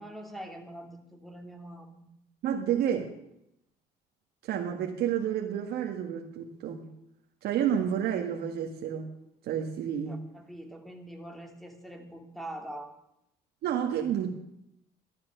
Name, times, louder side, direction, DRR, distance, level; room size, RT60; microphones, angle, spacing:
voice 1, 0.0-2.1 10.1-13.0, right 1 dB, ahead, 2.6 m, -44 dB
voice 2, 2.4-3.1 4.4-6.9 7.4-9.1 9.4-10.2 13.6-14.4, right 9 dB, 75° right, 1.7 m, -30 dB
14.0 x 12.0 x 6.6 m
cardioid pair, 110°, 17 cm